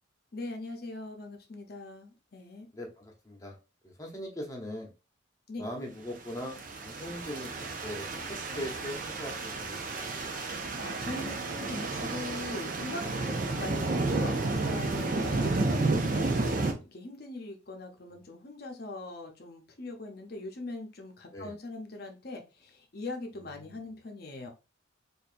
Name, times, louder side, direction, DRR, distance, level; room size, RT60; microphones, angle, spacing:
voice 1, 0.3-2.7 5.5-5.6 10.6-13.0 13.6-24.5, left 2 dB, 50° left, 4 dB, 0.7 m, -41 dB
voice 2, 2.7-3.6 3.8-4.9 5.6-7.5 7.8-10.2 13.3-13.4 15.2-15.4 21.3-21.5 23.6-23.8, left 1 dB, 15° left, 1 dB, 0.9 m, -41 dB
sound 1, 6.4-16.7, right 3 dB, 40° right, 0.5 m, -31 dB
4.7 x 2.6 x 2.5 m, 0.30 s
head